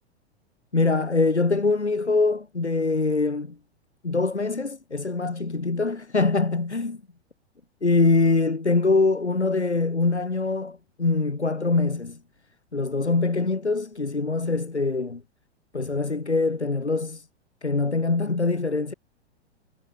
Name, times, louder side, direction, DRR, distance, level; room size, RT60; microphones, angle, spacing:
voice 1, 0.7-3.6 4.0-7.0 7.8-12.2 12.7-15.2 15.7-17.3 17.6-18.9, left 3 dB, 85° left, 2.9 m, -23 dB
figure-of-eight pair, 100°, 33 cm